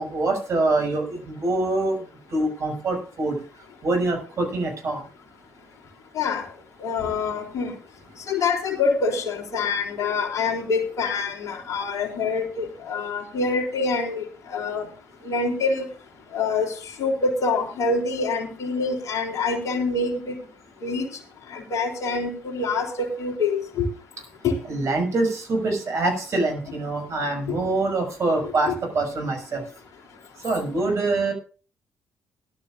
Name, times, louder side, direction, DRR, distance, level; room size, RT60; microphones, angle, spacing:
voice 1, 0.0-2.0 2.3-3.4 3.8-5.0 24.7-29.6 30.4-31.3, right 2 dB, 50° right, 3 dB, 6.0 m, -25 dB
voice 2, 6.1-6.5 6.8-7.7 8.3-14.9 15.2-15.9 16.3-20.3 20.8-21.1 21.5-23.9 24.4-24.6 27.5-27.6 28.7-28.8, left 4 dB, 55° left, 2 dB, 3.4 m, -26 dB
18.5 x 12.0 x 2.6 m, 0.36 s
hypercardioid pair, 45°, 6 cm